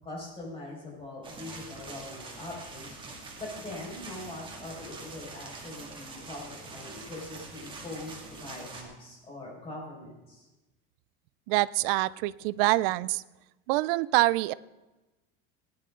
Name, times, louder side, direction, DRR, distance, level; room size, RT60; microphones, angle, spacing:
voice 1, 0.0-3.0 3.4-10.5, left 2 dB, 20° left, -3 dB, 5.3 m, -42 dB
sound 1, 1.2-8.8, right 3 dB, 15° right, 2.1 m, -44 dB
voice 2, 11.5-13.2 13.7-14.5, right 19 dB, 70° right, 20 dB, 0.5 m, -25 dB
18.0 x 10.5 x 3.8 m, 1.1 s
cardioid pair, 150°, 29 cm